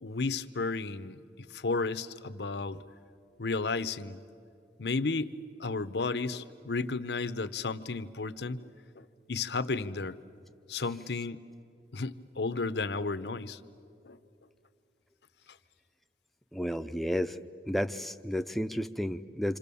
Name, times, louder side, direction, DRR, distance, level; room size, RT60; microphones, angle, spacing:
voice 1, 0.0-1.2 1.5-2.8 3.4-4.2 4.8-5.3 5.6-8.7 9.0-10.2 10.7-11.4 11.9-13.6 14.0-14.2, left 3 dB, 80° left, 13 dB, 0.8 m, -33 dB
voice 2, 16.5-17.4 17.7-19.6, equal, ahead, 8 dB, 0.5 m, -32 dB
27.0 x 27.0 x 7.0 m, 2.5 s
head